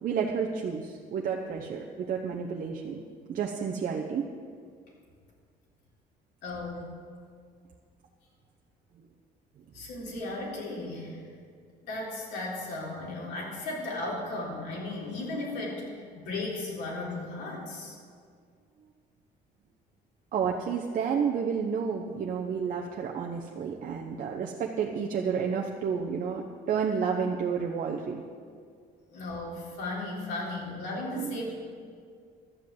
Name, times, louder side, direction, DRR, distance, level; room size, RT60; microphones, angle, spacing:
voice 1, 0.0-3.0 3.3-4.2 20.3-28.2 31.1-31.4, right 6 dB, 55° right, 0 dB, 0.9 m, -30 dB
voice 2, 6.4-6.8 9.7-11.2 11.8-15.8 16.1-18.0 29.1-31.5, left 2 dB, 85° left, -3 dB, 3.7 m, -35 dB
12.0 x 7.6 x 7.6 m, 2.1 s
cardioid pair, 110°, 17 cm